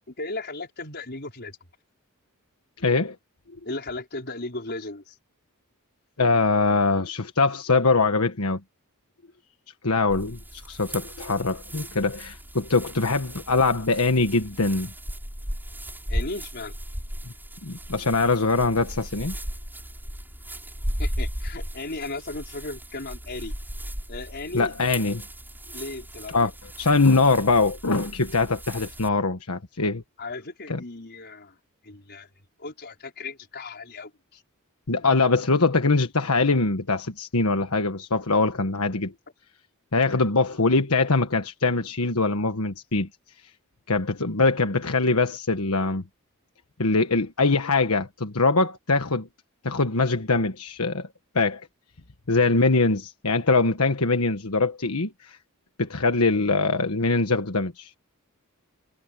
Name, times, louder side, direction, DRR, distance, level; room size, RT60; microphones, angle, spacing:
voice 1, 0.1-1.6 3.6-5.2 16.1-16.7 21.0-23.5 24.1-24.7 25.7-26.5 30.2-31.6 31.8-32.3 32.6-34.4, left 2 dB, 50° left, 5.1 m, -36 dB
voice 2, 2.8-3.1 6.2-8.6 9.8-14.9 17.6-19.3 24.5-25.2 26.3-26.5 26.8-30.0 30.7-30.8 34.9-39.1 39.9-43.1 43.9-46.0 46.8-49.3 49.6-51.1 51.3-51.6 52.3-55.4 55.8-58.0, left 3 dB, 75° left, 1.4 m, -23 dB
sound 1, 10.1-29.1, equal, 10° right, 6.6 m, -36 dB
head